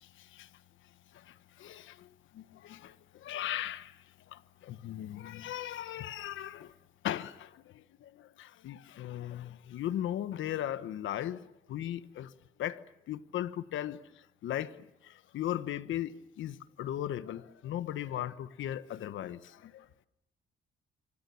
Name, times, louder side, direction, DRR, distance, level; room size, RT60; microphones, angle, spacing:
voice 1, 1.6-2.1 2.3-2.9 3.2-3.9 4.3-6.7 7.0-7.6 8.0-12.3 12.6-12.8 13.1-14.0 14.4-14.8 15.0-19.8, left 12 dB, 75° left, 1.2 m, -37 dB
27.0 x 25.5 x 7.1 m
cardioid pair, 90°, 20 cm